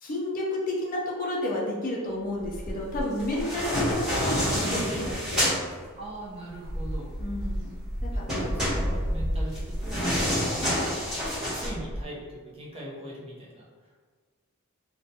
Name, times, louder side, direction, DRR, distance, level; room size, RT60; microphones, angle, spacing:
voice 1, 0.0-5.6 7.2-7.7 8.0-8.2, left 1 dB, 40° left, -2 dB, 0.4 m, -31 dB
sound 1, 2.4-5.5 6.0-10.6 11.0-12.0, equal, 75° right, 0.6 m, -33 dB
sound 2, 3.2-5.6 8.3-11.7, equal, 5° right, 1.2 m, -28 dB
voice 2, 5.9-7.1 8.1-11.1 11.4-13.7, right 1 dB, 30° right, -5 dB, 0.6 m, -41 dB
2.4 x 2.2 x 2.6 m, 1.5 s
head